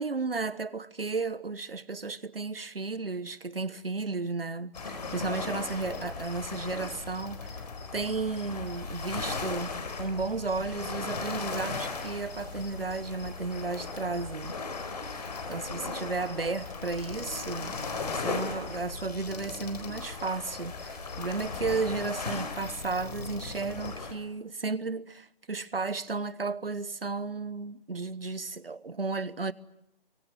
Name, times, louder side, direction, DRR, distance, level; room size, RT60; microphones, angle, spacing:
voice 1, 0.0-7.6 7.9-14.6 15.5-17.8 18.1-29.5, right 4 dB, 70° right, 1.2 m, -33 dB
sound 1, 4.7-24.1, left 4 dB, 40° left, 4.1 m, -37 dB
24.5 x 23.5 x 9.2 m
figure-of-eight pair, 150°, 30 cm